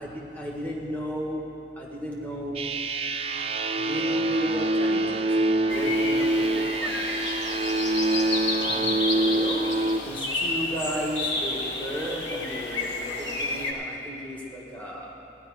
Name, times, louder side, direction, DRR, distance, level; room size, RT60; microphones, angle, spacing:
voice 1, 0.0-1.4 1.8-2.7 3.7-7.0 8.6-15.1, equal, 10° left, -4 dB, 1.5 m, -34 dB
sound 1, 2.5-10.0, right 2 dB, 35° right, 0.4 m, -25 dB
sound 2, 5.7-13.7, left 2 dB, 85° left, 1.4 m, -31 dB
15.5 x 10.0 x 4.8 m, 2.8 s
head